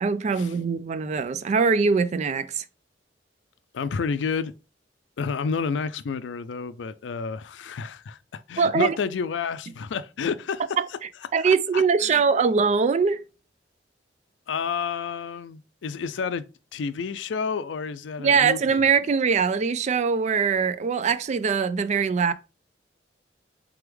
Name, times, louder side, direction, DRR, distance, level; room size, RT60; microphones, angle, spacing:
voice 1, 0.0-2.6 8.6-9.0 10.8-10.9 11.3-13.2 18.2-22.3, right 5 dB, 40° right, 0.3 m, -22 dB
voice 2, 3.7-4.5 5.2-10.6 11.4-12.2 14.5-16.4 16.7-18.8, left 5 dB, 85° left, 0.4 m, -30 dB
3.4 x 3.4 x 3.3 m
head